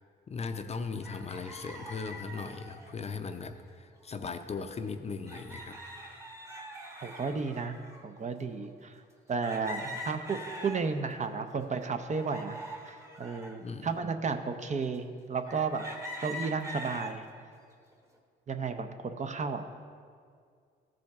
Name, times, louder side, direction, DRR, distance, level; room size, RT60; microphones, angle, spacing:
voice 1, 0.3-5.8 9.8-10.0 13.6-13.9, left 4 dB, 35° left, 8 dB, 0.5 m, -38 dB
sound 1, 1.0-2.9 4.1-4.2 4.5-4.6 5.3-8.1 8.6-8.7 9.4-11.2 11.6-13.6 14.2-14.3 15.5-17.2 17.7-18.1, equal, 15° right, 1.2 m, -43 dB
voice 2, 7.0-7.7 8.0-8.9 9.3-12.6 12.9-15.8 16.2-17.2 18.5-19.6, right 5 dB, 35° right, 7 dB, 0.6 m, -33 dB
14.5 x 5.1 x 3.5 m, 2.2 s
cardioid pair, 90°, 20 cm